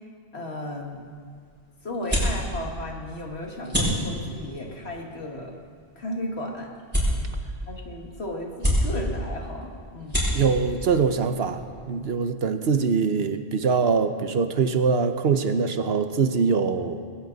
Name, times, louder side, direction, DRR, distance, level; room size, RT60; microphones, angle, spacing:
voice 1, 0.3-1.1 1.8-5.5 6.0-6.7 7.7-10.2, left 1 dB, 70° left, 1 dB, 2.3 m, -34 dB
sound 1, 0.6-12.2, equal, 10° right, 5.4 m, -31 dB
voice 2, 10.3-17.0, right 5 dB, 70° right, 9 dB, 1.1 m, -23 dB
20.5 x 17.0 x 4.0 m, 2.1 s
omnidirectional pair, 1.1 m